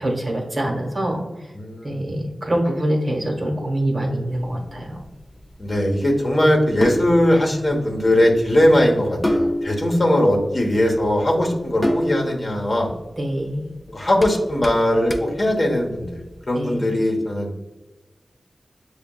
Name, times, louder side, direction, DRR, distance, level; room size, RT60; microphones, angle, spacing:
voice 1, 0.0-1.5 1.8-5.0 13.2-13.6 16.5-16.8, right 1 dB, 50° right, 0 dB, 1.1 m, -25 dB
voice 2, 1.5-2.0 5.6-12.9 13.9-16.2 16.5-17.5, left 1 dB, 50° left, 1 dB, 0.9 m, -19 dB
sound 1, 4.3-16.4, left 1 dB, 25° left, 0.4 m, -30 dB
6.8 x 2.3 x 2.2 m, 1.2 s
cardioid pair, 50°, 0 cm